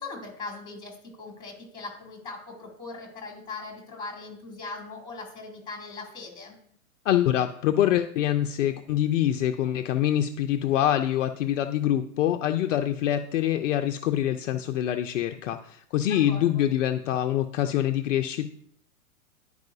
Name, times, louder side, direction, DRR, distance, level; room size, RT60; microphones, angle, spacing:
voice 1, 0.0-6.6 16.1-16.6, left 3 dB, 10° left, 1 dB, 2.6 m, -40 dB
voice 2, 7.1-18.5, left 11 dB, 55° left, 6 dB, 0.6 m, -25 dB
10.5 x 4.8 x 2.7 m, 0.65 s
hypercardioid pair, 120°, 44 cm